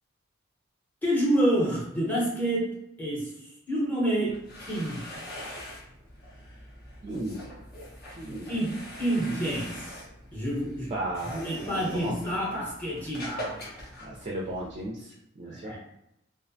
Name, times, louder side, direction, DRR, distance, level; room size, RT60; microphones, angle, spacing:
voice 1, 1.0-5.2 8.5-9.8 10.3-10.9 11.3-13.6 15.4-15.8, right 1 dB, 10° left, -5 dB, 0.7 m, -28 dB
sound 1, 4.2-14.9, left 1 dB, 50° left, 0.6 m, -43 dB
voice 2, 7.0-7.4 8.2-8.5 9.2-9.3 10.8-12.2 14.0-15.7, right 1 dB, 35° right, -2 dB, 0.3 m, -35 dB
2.4 x 2.1 x 2.6 m, 0.82 s
head